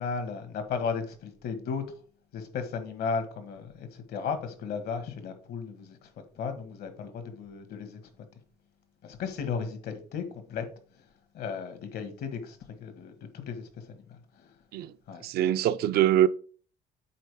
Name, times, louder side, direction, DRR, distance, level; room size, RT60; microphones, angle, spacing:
voice 1, 0.0-1.8 2.3-8.0 9.0-10.7 11.0-11.1 11.3-14.5 15.1-15.2, left 5 dB, 70° left, 1.6 m, -35 dB
voice 2, 15.2-16.3, right 11 dB, 70° right, 0.5 m, -23 dB
7.5 x 4.6 x 3.6 m
cardioid pair, 110°, 17 cm